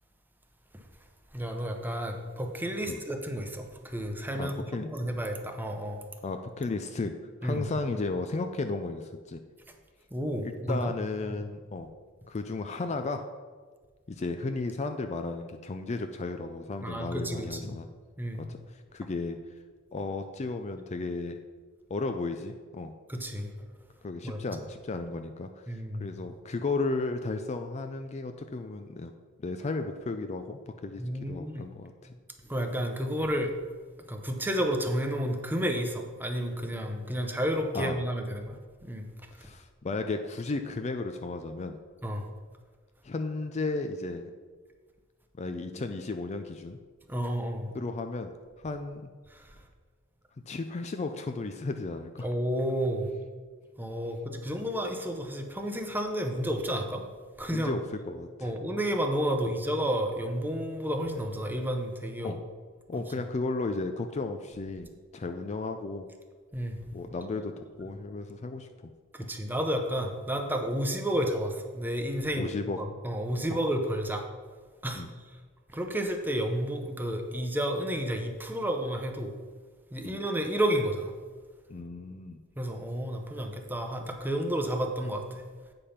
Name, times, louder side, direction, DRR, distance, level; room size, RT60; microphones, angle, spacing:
voice 1, 1.3-6.0 7.4-7.6 10.1-10.9 16.8-17.7 18.2-18.4 23.1-23.5 24.2-24.4 25.7-26.1 31.0-31.7 32.5-33.5 34.1-39.1 39.4-39.5 42.0-42.3 47.1-47.7 49.3-49.5 52.2-53.1 53.8-57.0 57.4-57.8 58.4-62.4 66.5-66.8 69.1-74.3 74.8-75.0 75.7-79.3 79.9-81.1 82.6-85.4, equal, 10° right, 4 dB, 0.8 m, -31 dB
voice 2, 4.3-4.9 6.2-7.1 7.4-9.4 10.4-11.9 12.3-13.3 14.1-17.9 18.4-19.4 19.9-21.4 21.9-22.9 24.0-29.1 29.4-32.2 37.7-38.0 39.4-41.8 43.0-44.3 45.4-46.8 47.7-48.3 48.6-49.1 50.5-52.3 57.5-58.5 62.2-62.4 62.9-66.1 66.9-68.7 69.2-69.3 72.4-72.8 75.0-75.1 80.0-80.2 81.7-82.4, left 3 dB, 30° left, 7 dB, 0.4 m, -34 dB
8.4 x 5.2 x 5.7 m, 1.5 s
head